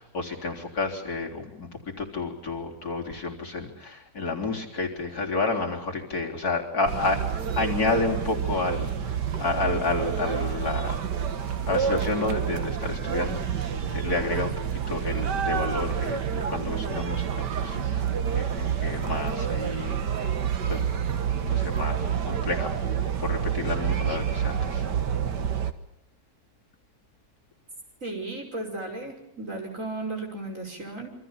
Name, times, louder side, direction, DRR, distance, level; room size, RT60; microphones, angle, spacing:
voice 1, 0.0-7.2 7.6-10.9 11.7-14.5 14.9-17.8 18.3-20.0 20.7-20.8 21.4-22.7 23.2-24.8, left 3 dB, 60° left, 0 dB, 4.2 m, -30 dB
sound 1, 6.9-25.7, right 8 dB, 80° right, 2.1 m, -28 dB
voice 2, 28.0-31.1, right 2 dB, 50° right, 2 dB, 6.1 m, -35 dB
28.0 x 25.5 x 5.7 m, 0.80 s
omnidirectional pair, 1.8 m